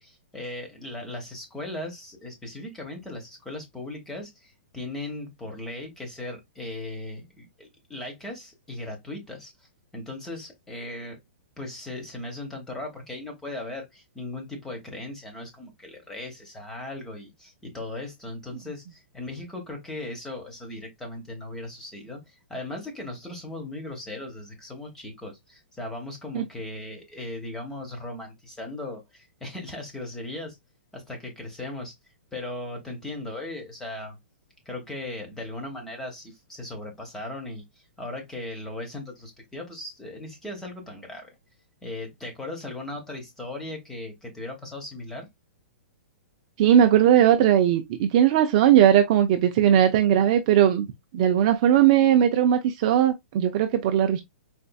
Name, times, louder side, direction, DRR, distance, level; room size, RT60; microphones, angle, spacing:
voice 1, 0.0-9.5 9.9-11.2 11.6-30.6 30.9-31.9 32.3-34.2 34.7-37.6 38.0-41.3 41.8-45.3, left 2 dB, 5° left, 0.9 m, -37 dB
voice 2, 46.6-50.9 51.1-54.2, right 10 dB, 35° right, 0.4 m, -19 dB
4.2 x 2.5 x 2.2 m
hypercardioid pair, 165°, 6 cm